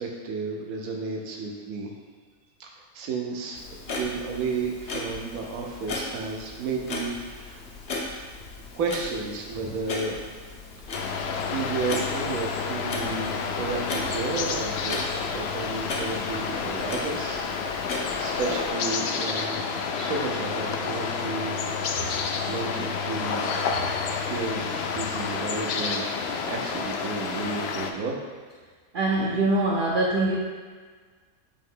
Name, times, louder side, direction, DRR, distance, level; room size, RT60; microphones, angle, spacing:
voice 1, 0.0-1.9 2.6-2.7 2.9-7.6 8.7-10.2 11.5-17.5 18.2-19.6 20.0-21.6 22.4-23.5 24.3-28.2, right 4 dB, 70° right, 0 dB, 1.2 m, -32 dB
Clock, 3.6-18.7, left 2 dB, 55° left, 1.0 m, -37 dB
sound 1, 10.9-27.9, left 5 dB, 70° left, 0.6 m, -29 dB
voice 2, 28.9-30.4, right 2 dB, 50° right, -5 dB, 0.7 m, -23 dB
8.5 x 3.1 x 3.8 m, 1.5 s
omnidirectional pair, 1.6 m